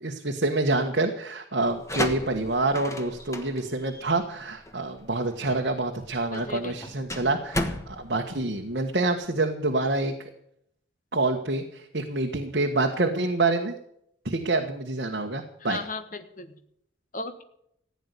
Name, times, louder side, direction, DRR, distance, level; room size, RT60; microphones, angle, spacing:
voice 1, 0.0-10.1 11.1-13.7 14.2-15.8, right 2 dB, 60° right, 3 dB, 1.4 m, -27 dB
sound 1, 1.6-9.2, left 1 dB, 15° left, 1.4 m, -35 dB
voice 2, 6.3-6.8 15.7-16.5 17.1-17.4, left 3 dB, 45° left, 8 dB, 1.4 m, -36 dB
15.5 x 9.5 x 8.3 m, 0.72 s
head